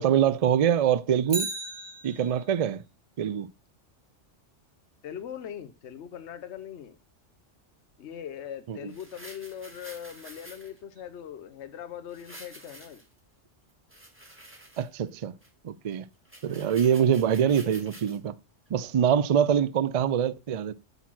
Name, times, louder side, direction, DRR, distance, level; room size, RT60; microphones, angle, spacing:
voice 1, 0.0-1.5 2.0-2.8 3.2-3.5 8.7-8.9 14.8-15.3 15.6-16.0 16.4-18.3 18.7-20.7, right 8 dB, 75° right, 0.3 m, -24 dB
Bicycle, 1.2-2.6 11.0-11.1, right 2 dB, 45° right, 1.4 m, -36 dB
voice 2, 5.0-7.0 8.0-13.0 16.8-17.0 18.9-19.1, left 9 dB, 70° left, 1.1 m, -41 dB
sound 1, 8.9-10.8 12.1-13.2 13.7-15.1 15.4-15.5 15.9-16.0 16.2-18.2 18.7-18.8, right 1 dB, 10° right, 1.8 m, -49 dB
8.3 x 4.0 x 6.1 m
omnidirectional pair, 1.2 m